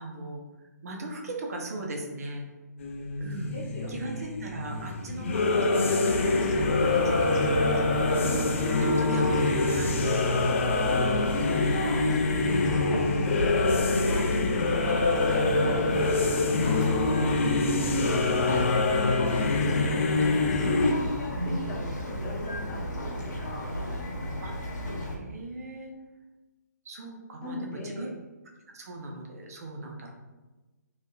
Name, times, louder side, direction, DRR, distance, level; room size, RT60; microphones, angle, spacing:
voice 1, 0.0-2.4 3.2-3.5 3.9-8.4 8.8-10.0 11.9-12.1 14.9-15.1 19.3-19.5 24.4-24.5 25.0-25.9 26.8-28.1 28.7-30.2, right 2 dB, 55° right, 1 dB, 0.6 m, -39 dB
sound 1, 2.8-20.9, left 3 dB, 45° left, 0.4 m, -25 dB
voice 2, 3.5-4.3 8.2-8.5 10.8-12.1 12.5-14.3 14.8-15.2 15.5-18.5 19.1-23.7 27.4-28.1, left 1 dB, 20° left, -5 dB, 0.7 m, -39 dB
Bird vocalization bird call bird song, 6.1-25.2, equal, 85° left, 0.9 m, -33 dB
3.3 x 2.7 x 2.3 m, 1.2 s
hypercardioid pair, 155°, 10 cm